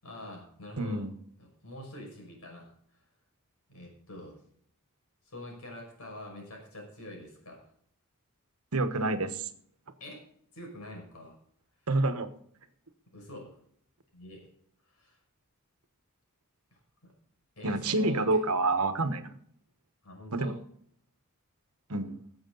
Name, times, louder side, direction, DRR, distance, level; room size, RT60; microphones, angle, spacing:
voice 1, 0.0-1.0 1.4-2.7 3.7-4.4 5.2-7.6 10.0-10.2 10.5-11.4 13.1-13.5 14.1-14.5 14.8-15.2 17.0-17.1 17.6-18.4 20.0-20.6, left 1 dB, 75° left, 0 dB, 5.9 m, -45 dB
voice 2, 0.8-1.1 8.7-9.5 11.9-12.3 17.6-19.4 20.3-20.5 21.9-22.2, right 2 dB, 75° right, 9 dB, 1.3 m, -28 dB
18.0 x 7.9 x 4.0 m, 0.64 s
head